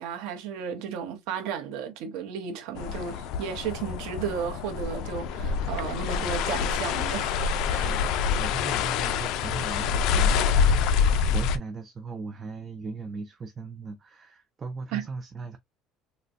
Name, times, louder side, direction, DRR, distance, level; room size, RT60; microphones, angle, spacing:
voice 1, 0.0-8.0 14.9-15.1, right 7 dB, 85° right, 0.9 m, -34 dB
sound 1, 2.8-11.6, left 6 dB, 65° left, 0.4 m, -26 dB
voice 2, 7.8-15.6, right 4 dB, 25° right, 0.4 m, -38 dB
4.0 x 2.2 x 2.4 m
cardioid pair, 150°, 0 cm